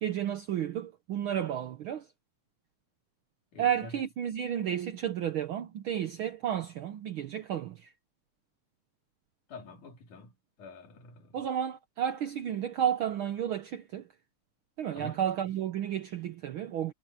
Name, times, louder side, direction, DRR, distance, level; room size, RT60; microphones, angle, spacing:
voice 1, 0.0-2.1 3.6-7.9 11.3-14.1 14.8-16.9, right 10 dB, 80° right, 1.1 m, -32 dB
voice 2, 3.5-4.0 9.5-11.5 15.0-15.2, left 3 dB, 80° left, 5.2 m, -47 dB
omnidirectional pair, 3.5 m